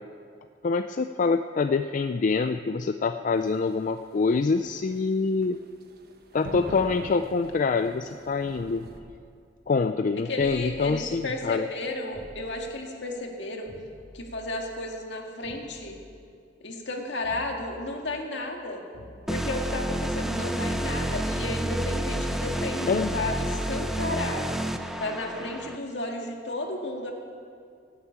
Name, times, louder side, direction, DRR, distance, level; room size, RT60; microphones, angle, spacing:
voice 1, 0.6-5.6 6.3-8.8 9.7-11.7 22.9-23.1, left 4 dB, 45° left, 8 dB, 0.4 m, -25 dB
sound 1, 3.3-9.0, right 1 dB, 60° right, 1.2 m, -42 dB
sound 2, 8.8-9.4 10.4-11.4 12.1-12.7 13.6-14.7 15.4-16.0 17.2-18.4 18.9-19.6 20.4-21.0, equal, 85° right, 3.0 m, -49 dB
voice 2, 10.3-13.7 14.1-16.0 16.6-18.8 19.3-24.6 25.0-27.1, left 2 dB, 70° left, 2 dB, 2.0 m, -33 dB
sound 3, 19.3-25.8, right 1 dB, ahead, 0.6 m, -29 dB
17.0 x 8.2 x 8.9 m, 2.3 s
head